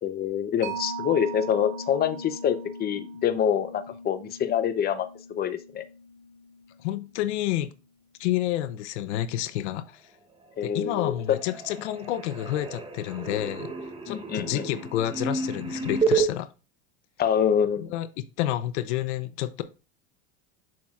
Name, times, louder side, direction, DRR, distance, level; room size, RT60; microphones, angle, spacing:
voice 1, 0.0-5.1 5.4-5.8 10.6-11.1 14.1-14.7 17.2-17.9, left 8 dB, 30° left, 0.8 m, -26 dB
Mallet percussion, 0.6-7.7, right 2 dB, 85° right, 2.5 m, -40 dB
voice 2, 6.8-7.7 8.2-10.0 10.6-13.7 14.1-16.5 17.8-18.1 18.4-19.6, left 13 dB, 85° left, 0.7 m, -29 dB
sound 1, 10.3-10.9 11.1-16.3, right 5 dB, 15° right, 1.0 m, -31 dB
7.3 x 6.1 x 2.4 m
supercardioid pair, 120°, 34 cm